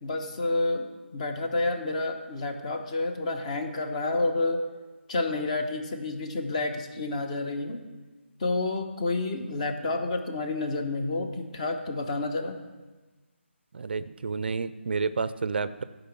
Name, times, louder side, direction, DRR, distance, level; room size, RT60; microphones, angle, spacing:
voice 1, 0.0-0.9 1.1-4.6 5.1-7.8 8.4-12.6, left 2 dB, 30° left, 6 dB, 1.1 m, -29 dB
voice 2, 13.7-15.8, right 4 dB, 50° right, 14 dB, 0.5 m, -30 dB
13.5 x 5.2 x 7.1 m, 1.2 s
figure-of-eight pair, 155°, 7 cm